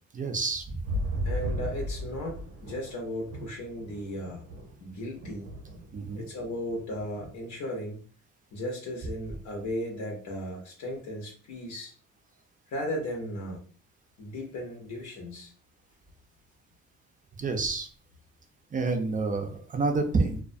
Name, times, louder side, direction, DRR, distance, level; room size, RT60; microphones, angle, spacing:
voice 1, 0.1-0.9 5.9-6.2 17.4-17.9 18.7-20.4, right 3 dB, 25° right, 5 dB, 0.5 m, -28 dB
sound 1, 0.8-4.9 5.1-6.3 6.5-7.3 7.6-7.7, equal, 80° right, 0.7 m, -35 dB
voice 2, 1.2-4.4 4.8-5.5 6.1-8.1 8.5-11.9 12.7-13.6 14.2-15.5, left 1 dB, 70° left, 1 dB, 0.8 m, -36 dB
2.2 x 2.2 x 2.5 m, 0.42 s
cardioid pair, 90°, 30 cm